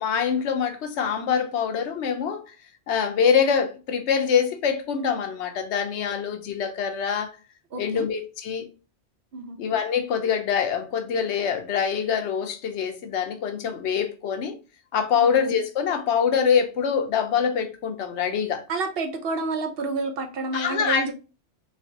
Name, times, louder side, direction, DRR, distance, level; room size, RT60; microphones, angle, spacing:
voice 1, 0.0-2.6 2.9-7.3 7.7-8.7 9.6-14.5 14.9-18.6 20.5-21.1, left 7 dB, 70° left, 0.9 m, -24 dB
voice 2, 7.7-8.0 9.3-9.6 15.2-15.3 18.7-21.1, right 3 dB, 60° right, 0.8 m, -29 dB
3.3 x 3.2 x 2.8 m
omnidirectional pair, 1.2 m